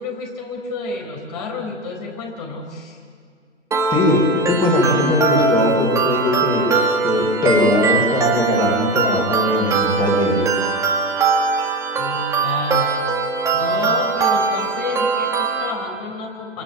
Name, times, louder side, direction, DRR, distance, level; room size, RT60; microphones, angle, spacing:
voice 1, 0.0-3.0 12.0-12.9 13.5-16.6, left 2 dB, 35° left, 2 dB, 4.2 m, -29 dB
sound 1, 3.7-15.7, right 5 dB, 10° right, 1.9 m, -21 dB
voice 2, 3.9-6.7 7.0-10.4, left 2 dB, 15° left, 1 dB, 4.2 m, -19 dB
26.0 x 25.5 x 9.0 m, 2.1 s
figure-of-eight pair, 135°, 36 cm